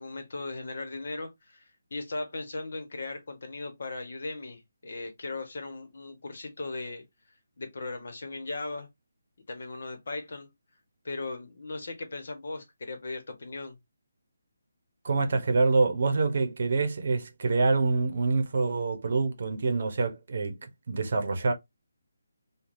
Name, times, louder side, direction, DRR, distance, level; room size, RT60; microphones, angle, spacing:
voice 1, 0.0-7.0 7.6-8.9 9.5-10.5 11.0-13.8, left 3 dB, 60° left, 1.1 m, -38 dB
voice 2, 15.0-21.5, right 3 dB, 50° right, 0.8 m, -26 dB
3.2 x 2.3 x 2.6 m
hypercardioid pair, 170°, 0 cm